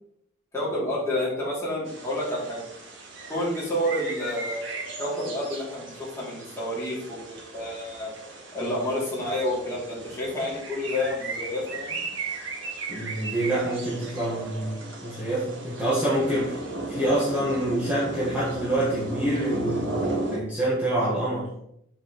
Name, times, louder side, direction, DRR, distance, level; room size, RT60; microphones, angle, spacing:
voice 1, 0.5-2.6 3.3-8.1 8.5-12.0, left 1 dB, 15° left, -8 dB, 2.6 m, -29 dB
sound 1, 1.9-20.4, right 2 dB, 75° right, 1.5 m, -36 dB
voice 2, 12.9-16.6 16.9-20.0 20.3-21.5, right 1 dB, 10° right, -9 dB, 1.3 m, -26 dB
6.0 x 5.9 x 3.0 m, 0.76 s
head